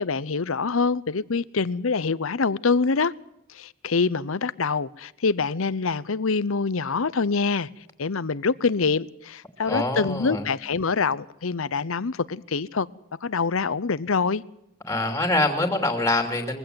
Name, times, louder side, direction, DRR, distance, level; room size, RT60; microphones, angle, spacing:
voice 1, 0.0-3.1 3.5-7.7 8.0-12.9 13.2-14.4, left 4 dB, 70° left, 0.8 m, -25 dB
voice 2, 9.7-10.4 14.9-16.6, left 2 dB, 15° left, 2.8 m, -24 dB
22.0 x 16.0 x 7.7 m
head